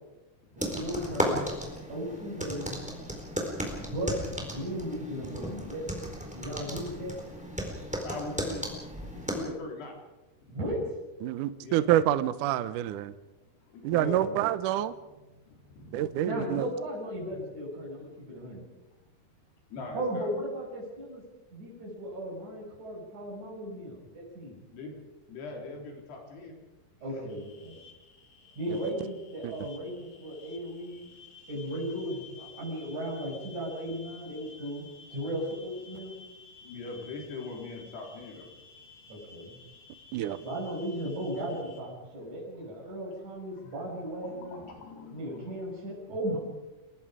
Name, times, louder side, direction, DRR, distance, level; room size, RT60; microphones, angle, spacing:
voice 1, 0.5-1.5 1.9-2.9 3.8-5.8 6.3-7.2 10.5-10.8 13.9-14.4 16.2-18.6 19.9-21.2 21.5-24.6 27.0-27.8 28.6-31.1 31.5-36.1 39.1-39.6 40.4-44.6 45.1-46.4, equal, 45° right, -5 dB, 7.4 m, -36 dB
sound 1, 0.6-9.4, equal, ahead, 3.8 m, -35 dB
voice 2, 8.0-8.6 9.1-9.9 11.6-11.8 13.7-14.2 15.5-16.1 17.3-17.4 19.7-20.3 24.7-24.9 25.2-26.6 36.6-38.5 43.8-45.6 46.1-46.2, left 3 dB, 85° left, 1 dB, 5.8 m, -41 dB
voice 3, 11.2-13.1 13.8-14.9 15.9-16.7 28.7-28.8 29.4-29.5 40.1-40.4, right 12 dB, 75° right, 13 dB, 2.0 m, -27 dB
sound 2, 27.3-41.8, left 5 dB, 50° left, 3.5 m, -53 dB
29.5 x 19.0 x 5.0 m, 1.1 s
omnidirectional pair, 4.6 m